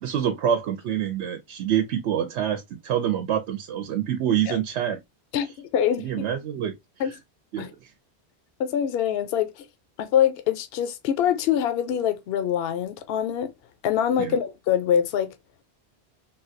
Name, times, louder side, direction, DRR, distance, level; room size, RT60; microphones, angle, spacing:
voice 1, 0.0-5.0 6.0-6.7 7.0-7.2 7.5-7.9 14.2-14.4, right 9 dB, 85° right, 0.9 m, -26 dB
voice 2, 5.3-6.3 7.0-7.1 7.6-7.7 8.6-9.7 10.0-13.5 13.8-15.3, left 9 dB, 70° left, 0.8 m, -24 dB
3.7 x 2.3 x 2.5 m
omnidirectional pair, 1.1 m